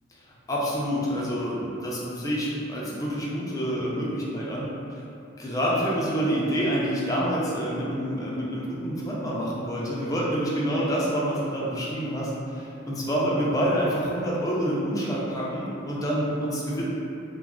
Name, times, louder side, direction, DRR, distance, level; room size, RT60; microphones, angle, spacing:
voice 1, 0.5-4.7 5.4-16.8, equal, 15° left, -6 dB, 0.4 m, -27 dB
2.3 x 2.0 x 3.5 m, 2.7 s
head